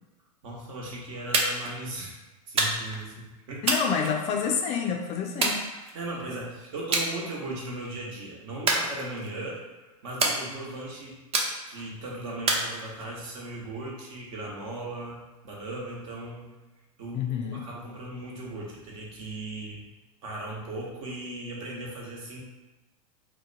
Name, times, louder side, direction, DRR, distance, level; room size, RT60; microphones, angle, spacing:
voice 1, 0.4-2.1 2.5-3.7 5.9-9.6 10.0-11.2 11.7-16.5 17.0-19.8 20.2-22.4, right 2 dB, 60° right, -3 dB, 1.0 m, -37 dB
sound 1, 1.3-1.7 2.6-3.0 3.7-4.6 5.4-6.2 6.9-7.1 7.5-7.9 8.7-9.4 10.2-10.8 11.3-11.9 12.5-13.3, right 3 dB, 30° right, 0.6 m, -28 dB
voice 2, 3.6-5.6 17.1-17.6, left 6 dB, 35° left, 3 dB, 0.4 m, -28 dB
2.7 x 2.2 x 3.8 m, 1.1 s
hypercardioid pair, 105°, 18 cm